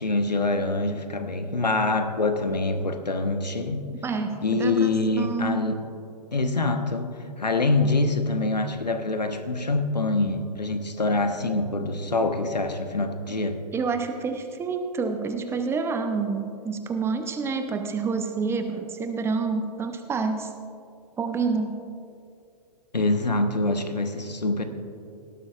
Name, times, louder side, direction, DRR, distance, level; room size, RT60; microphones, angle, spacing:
voice 1, 0.0-3.8 4.4-5.8 6.3-7.1 7.4-13.6 22.9-24.6, left 2 dB, 85° left, 7 dB, 1.1 m, -25 dB
voice 2, 3.9-4.9 5.2-5.7 13.7-20.5 21.2-21.8, right 4 dB, 10° right, 7 dB, 0.7 m, -28 dB
18.0 x 12.5 x 2.4 m, 2.4 s
figure-of-eight pair, 115°, 21 cm